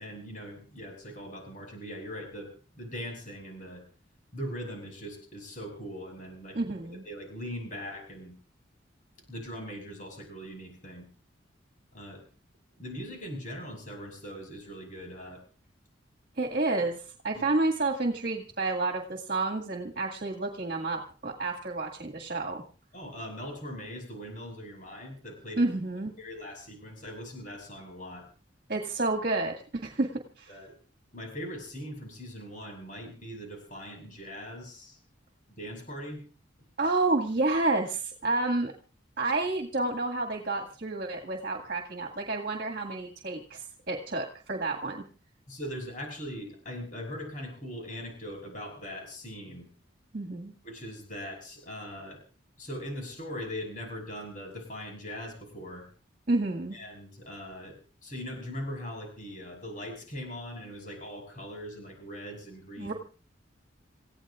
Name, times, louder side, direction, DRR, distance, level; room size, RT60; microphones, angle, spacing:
voice 1, 0.0-3.8 4.3-6.6 6.9-8.3 9.3-11.1 11.9-12.2 12.8-15.4 17.3-17.4 22.9-25.7 26.2-28.3 30.5-30.7 31.1-35.0 35.6-36.2 45.5-49.7 50.6-52.2 52.6-55.8 56.7-57.8 58.0-62.9, equal, 40° left, 2 dB, 6.0 m, -40 dB
voice 2, 6.5-7.0 16.4-22.6 25.6-26.1 28.7-30.1 30.4-30.6 36.8-38.7 39.2-45.0 50.1-50.5 56.3-56.8 62.8-62.9, right 2 dB, 50° right, 3 dB, 1.9 m, -30 dB
28.0 x 16.0 x 2.5 m, 0.38 s
head